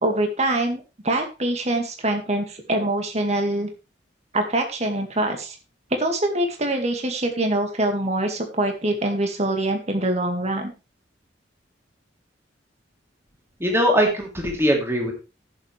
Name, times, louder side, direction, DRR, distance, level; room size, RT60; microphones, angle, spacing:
voice 1, 0.0-3.7 4.3-5.6 6.0-10.7, right 1 dB, 35° right, 4 dB, 2.2 m, -24 dB
voice 2, 13.6-15.1, equal, 15° right, 0 dB, 3.2 m, -21 dB
16.0 x 7.4 x 3.4 m, 0.29 s
head